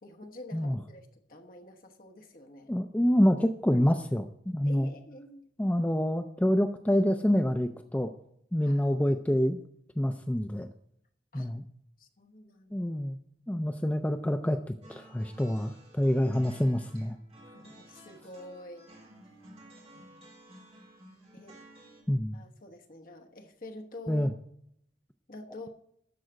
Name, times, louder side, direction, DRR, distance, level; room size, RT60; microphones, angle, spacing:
voice 1, 0.0-2.7 4.7-5.4 8.6-8.9 11.3-11.5 12.0-12.8 17.5-18.9 19.9-20.2 21.3-21.6 22.3-24.3 25.3-25.7, left 1 dB, 50° left, 3 dB, 1.1 m, -47 dB
voice 2, 2.7-4.9 5.6-8.1 8.5-9.6 10.0-10.7 11.3-11.6 12.7-13.2 13.5-17.2 22.1-22.4 24.1-24.3, equal, 10° left, 6 dB, 0.4 m, -27 dB
sound 1, 14.8-22.0, right 1 dB, 35° right, 3.7 m, -54 dB
12.5 x 4.8 x 7.8 m, 0.72 s
head